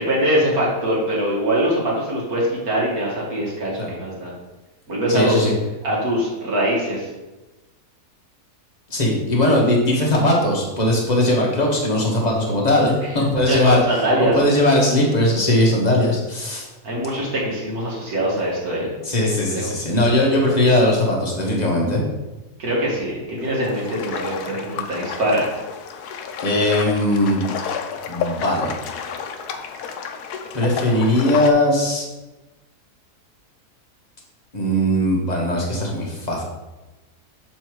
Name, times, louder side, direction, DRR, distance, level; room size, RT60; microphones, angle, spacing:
voice 1, 0.0-4.3 4.9-5.5 5.8-7.1 13.5-14.4 16.8-18.9 19.5-19.7 22.6-25.5, right 1 dB, 65° right, -5 dB, 2.3 m, -22 dB
voice 2, 5.1-5.5 8.9-16.7 19.0-22.0 26.4-27.4 28.1-28.7 30.5-32.1 34.5-36.4, left 1 dB, 25° left, -2 dB, 1.4 m, -19 dB
sound 1, 23.4-31.5, left 6 dB, 80° left, 1.2 m, -31 dB
6.8 x 4.4 x 4.6 m, 1.1 s
omnidirectional pair, 1.7 m